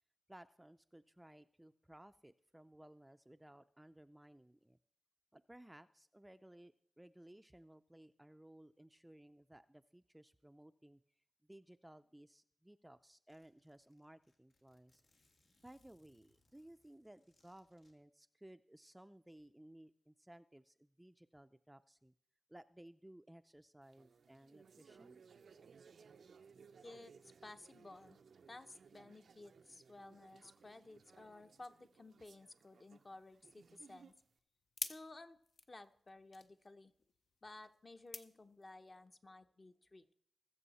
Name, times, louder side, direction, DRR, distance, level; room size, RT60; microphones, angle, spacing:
voice 1, 0.3-4.8 5.3-11.0 11.5-15.0 15.6-22.1 22.5-25.2, right 1 dB, 10° right, 11 dB, 0.4 m, -59 dB
Zipper (clothing), 12.5-12.6 12.8-12.9 13.3-17.9, left 2 dB, 85° left, 2.1 m, -77 dB
sound 1, 23.8-34.3, right 6 dB, 75° right, 0.5 m, -63 dB
voice 2, 26.8-27.1 27.4-28.2 28.5-34.1 34.9-35.4 35.7-36.9 37.4-40.1, left 2 dB, 40° left, 8 dB, 0.9 m, -55 dB
sound 2, 33.5-39.1, left 4 dB, 65° left, 0.6 m, -51 dB
20.5 x 6.9 x 4.2 m, 0.65 s
cardioid pair, 65°, 0 cm